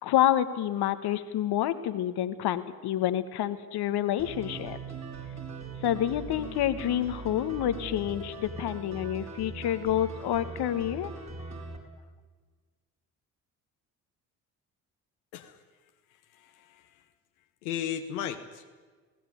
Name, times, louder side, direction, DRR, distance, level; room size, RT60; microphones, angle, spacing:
voice 1, 0.0-4.8 5.8-11.1, left 11 dB, 65° left, 12 dB, 1.4 m, -28 dB
sound 1, 4.2-11.8, right 3 dB, 40° right, 4.9 m, -40 dB
voice 2, 15.3-15.6 16.1-17.0 17.6-18.7, left 9 dB, 85° left, 5 dB, 1.2 m, -36 dB
21.0 x 16.5 x 9.3 m, 1.4 s
hypercardioid pair, 55°, 42 cm